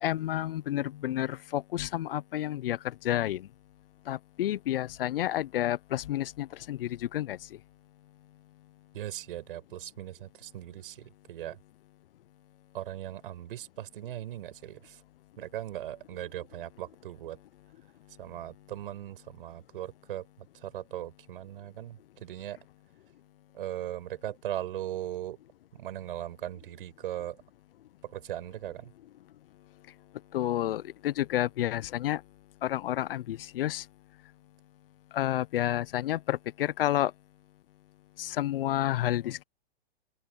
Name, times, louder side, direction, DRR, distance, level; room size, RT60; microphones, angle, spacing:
voice 1, 0.0-3.5 4.1-7.4 30.3-32.2 32.6-33.8 35.1-37.1 38.2-39.4, left 13 dB, 65° left, 0.7 m, -30 dB
voice 2, 8.9-11.6 12.7-15.0 15.4-17.4 18.2-20.3 20.6-22.6 23.5-25.4 25.7-27.4 28.0-28.9, right 12 dB, 65° right, 6.0 m, -39 dB
open air
hypercardioid pair, 135°, 30 cm